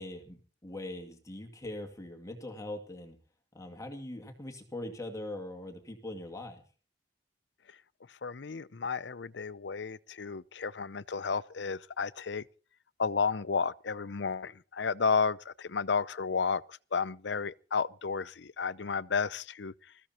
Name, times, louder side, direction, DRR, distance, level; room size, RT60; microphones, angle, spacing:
voice 1, 0.0-3.2 3.5-6.6, left 1 dB, 20° left, 2.3 m, -41 dB
voice 2, 8.2-12.4 13.0-19.7, left 5 dB, 75° left, 0.7 m, -32 dB
20.5 x 14.5 x 4.4 m
head